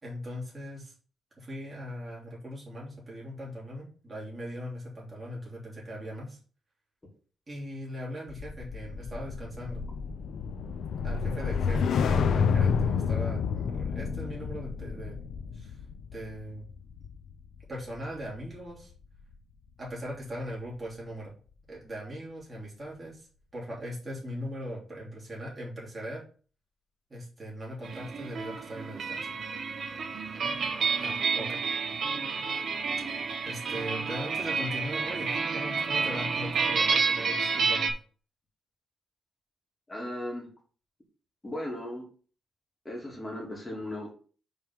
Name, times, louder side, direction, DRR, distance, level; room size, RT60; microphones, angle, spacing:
voice 1, 0.0-0.9 1.4-6.4 7.5-9.8 11.0-15.2 15.5-15.8 16.1-16.7 17.7-18.9 19.8-21.3 21.7-23.3 23.5-26.2 27.1-29.3 31.0-31.6 33.4-38.0, equal, 25° right, -5 dB, 3.2 m, -39 dB
sound 1, 8.3-18.7 19.0-19.3, left 6 dB, 70° left, 0.6 m, -30 dB
sound 2, 27.8-37.9, right 5 dB, 55° right, 1.0 m, -30 dB
voice 2, 39.9-40.5 41.4-42.0 42.8-44.1, left 1 dB, 15° left, -2 dB, 2.8 m, -36 dB
5.4 x 4.6 x 5.5 m, 0.40 s
cardioid pair, 140°, 0 cm